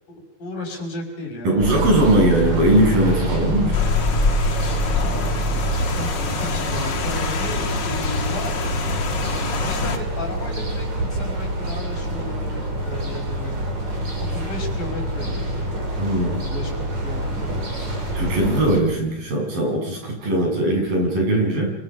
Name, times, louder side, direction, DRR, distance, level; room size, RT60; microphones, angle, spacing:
voice 1, 0.1-1.8 5.0-5.3 6.0-13.5 14.3-15.7 16.2-16.7 17.0-18.0, left 2 dB, 70° left, 2 dB, 7.4 m, -34 dB
voice 2, 1.4-3.8 16.0-16.4 18.1-21.7, right 1 dB, 70° right, 1 dB, 9.4 m, -20 dB
sound 1, 1.6-18.8, right 1 dB, 50° right, 7.0 m, -26 dB
Rain, 3.7-10.0, left 5 dB, 45° left, 1.6 m, -25 dB
30.0 x 26.0 x 6.0 m, 0.86 s
omnidirectional pair, 4.1 m